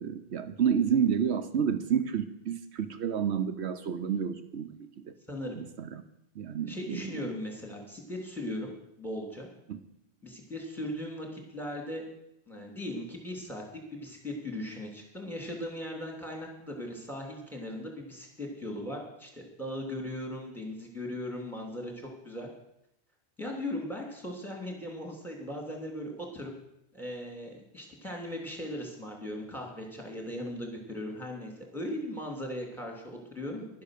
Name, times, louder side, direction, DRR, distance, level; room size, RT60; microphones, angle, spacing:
voice 1, 0.0-5.1 5.6-5.9 6.4-7.0 9.7-9.8, right 7 dB, 80° right, 10 dB, 1.1 m, -30 dB
voice 2, 5.3-5.6 6.7-9.5 10.2-12.0 12.5-13.6 13.9-22.5 23.4-26.5 26.9-33.7, left 1 dB, ahead, 0 dB, 3.0 m, -38 dB
11.5 x 10.0 x 6.7 m, 0.81 s
omnidirectional pair, 1.1 m